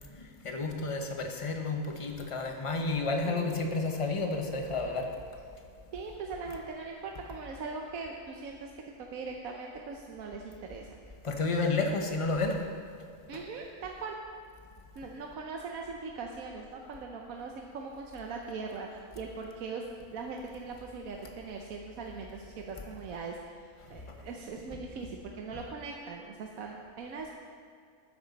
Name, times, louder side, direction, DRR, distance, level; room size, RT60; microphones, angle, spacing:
voice 1, 0.1-5.1 11.2-12.6 23.9-24.0, left 3 dB, 25° left, 3 dB, 0.9 m, -31 dB
voice 2, 3.2-4.0 5.9-10.9 13.3-14.2 15.0-19.8 20.1-27.3, right 4 dB, 70° right, 1 dB, 1.2 m, -41 dB
12.5 x 9.9 x 4.0 m, 2.3 s
omnidirectional pair, 1.5 m